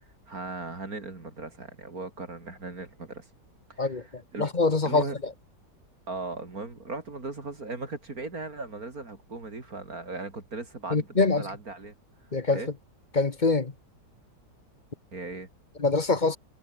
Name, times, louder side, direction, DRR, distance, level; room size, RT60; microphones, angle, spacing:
voice 1, 0.3-3.2 3.7-4.5 4.8-5.2 6.1-12.0 12.5-12.7 15.1-15.5, right 3 dB, 60° right, 4.2 m, -38 dB
voice 2, 4.4-5.0 10.9-11.4 12.3-12.6 13.1-13.7 15.8-16.4, left 3 dB, 30° left, 1.4 m, -24 dB
omnidirectional pair, 1.8 m